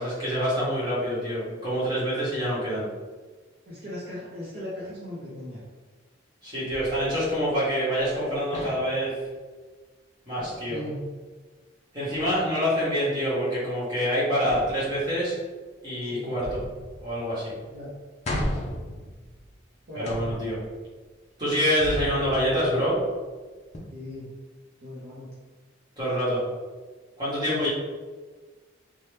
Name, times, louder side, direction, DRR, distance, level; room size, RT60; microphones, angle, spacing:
voice 1, 0.0-2.8 6.4-9.1 10.3-10.8 11.9-15.3 15.8-16.6 17.0-17.5 19.9-20.6 21.4-23.0 26.0-26.4 27.2-27.7, equal, 20° right, -10 dB, 1.2 m, -26 dB
voice 2, 3.7-5.6 10.7-11.0 16.0-16.3 17.7-17.9 19.9-20.2 23.9-24.3 24.8-25.3 27.5-27.7, left 1 dB, 55° right, -8 dB, 0.7 m, -37 dB
sound 1, 6.7-8.2 8.5-9.1 10.4-10.7 12.1-12.5 14.4-15.3 16.4-17.4 17.7-17.8 18.2-19.6 20.0-20.8 21.8-23.1 23.7-23.8, left 1 dB, 35° left, 0.5 m, -36 dB
2.8 x 2.2 x 3.2 m, 1.4 s
head